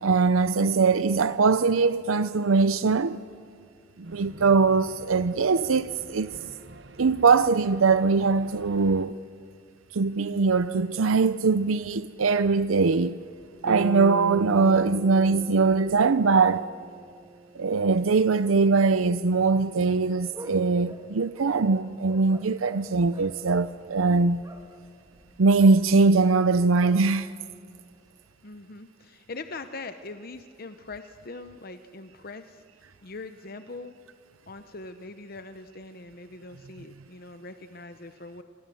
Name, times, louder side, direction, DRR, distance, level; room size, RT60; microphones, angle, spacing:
voice 1, 0.0-3.2 4.0-6.3 7.0-9.2 9.9-13.2 13.6-16.7 17.5-24.4 25.4-27.3, right 4 dB, 85° right, 0.6 m, -22 dB
sound 1, 4.0-9.1, right 2 dB, 60° right, 1.1 m, -47 dB
sound 2, 13.6-18.0, right 1 dB, 5° left, 1.6 m, -38 dB
sound 3, 19.4-28.3, right 1 dB, 15° right, 2.1 m, -50 dB
voice 2, 28.4-33.9 34.5-38.4, left 3 dB, 45° left, 0.9 m, -42 dB
29.0 x 26.0 x 7.8 m
head